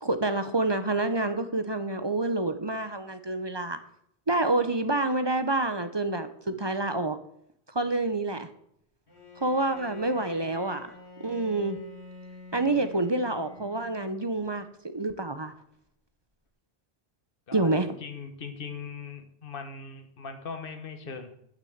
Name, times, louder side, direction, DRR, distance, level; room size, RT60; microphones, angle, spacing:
voice 1, 0.0-3.8 4.3-7.2 7.7-8.5 9.4-10.9 11.2-11.8 12.5-15.5 17.5-17.9, right 2 dB, 25° right, 10 dB, 0.7 m, -28 dB
Bowed string instrument, 9.1-14.5, left 2 dB, 85° left, 3.2 m, -48 dB
voice 2, 12.5-12.8 17.5-17.7 18.0-21.3, left 5 dB, 55° left, 6 dB, 1.5 m, -40 dB
9.7 x 6.2 x 8.0 m, 0.72 s
omnidirectional pair, 1.1 m